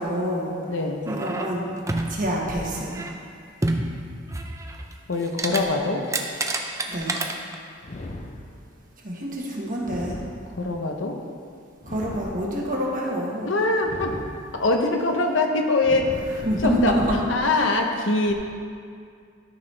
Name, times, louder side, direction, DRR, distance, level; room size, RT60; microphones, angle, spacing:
voice 1, 0.0-0.5 1.1-1.7 2.1-3.1 6.9-7.2 9.0-10.2 11.9-13.6 16.4-17.2, equal, 45° right, -2 dB, 1.4 m, -27 dB
voice 2, 0.7-1.1 5.1-6.0 10.6-11.2 13.5-14.1 14.5-16.1 16.6-16.9 17.3-18.3, left 2 dB, 70° left, 3 dB, 0.8 m, -23 dB
sound 1, 1.1-2.2 2.6-3.1 3.6-4.9 5.2-5.6 5.9-7.6 8.0-8.1, right 2 dB, 15° right, 0.5 m, -28 dB
sound 2, 7.8-8.9 9.8-10.9 11.8-12.9 13.8-14.9 15.8-16.9, left 1 dB, 35° left, 0.6 m, -38 dB
12.5 x 6.0 x 3.4 m, 2.2 s
head